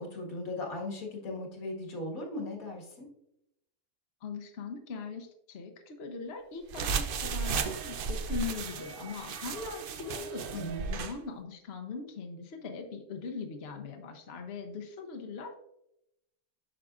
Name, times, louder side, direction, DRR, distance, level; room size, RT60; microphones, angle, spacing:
voice 1, 0.0-3.1 10.5-10.9, left 2 dB, 70° left, -1 dB, 2.0 m, -38 dB
voice 2, 4.2-10.5 10.9-15.5, left 4 dB, 55° left, 4 dB, 0.9 m, -40 dB
sound 1, 6.7-11.2, right 5 dB, 65° right, 0.5 m, -34 dB
8.5 x 6.0 x 2.4 m, 0.83 s
omnidirectional pair, 1.5 m